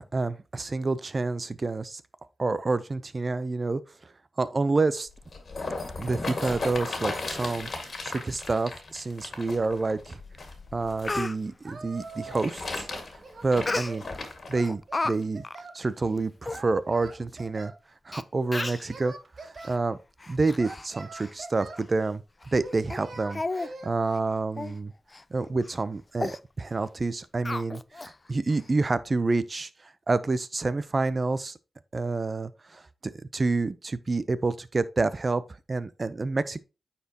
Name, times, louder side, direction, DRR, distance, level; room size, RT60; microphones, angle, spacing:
voice 1, 0.0-2.0 2.4-3.8 4.4-5.1 6.0-7.7 8.0-10.2 10.7-12.9 13.4-14.0 14.5-15.4 15.7-17.7 18.1-19.1 19.4-20.0 20.3-22.2 22.5-24.9 25.3-29.7 30.1-31.6 31.9-35.4 35.7-36.6, right 3 dB, 40° right, 0.6 m, -28 dB
sound 1, 5.1-11.2 12.0-14.6 15.2-15.3, left 3 dB, 55° left, 1.9 m, -36 dB
Speech, 10.3-10.4 10.8-11.3 13.7-14.2 14.6-15.1 15.4-15.6 16.2-16.3 16.4-16.6 17.4-17.5 18.1-18.2 18.5-18.9 19.6-19.8 20.2-20.9 21.2-21.3 21.8-21.9 22.4-22.6 22.9-23.0 23.3-23.7 24.0-24.2 24.6-24.8 25.1-25.2 25.6-25.8 26.2-26.4 27.4-28.1 28.5-28.6, left 2 dB, 30° left, 0.4 m, -33 dB
Singing, 11.6-12.6 12.9-14.1 14.5-15.8 16.5-17.8 18.5-19.8 20.6-21.9 22.6-23.9, right 3 dB, 60° right, 1.1 m, -43 dB
9.2 x 4.3 x 2.9 m
cardioid pair, 60°, 0 cm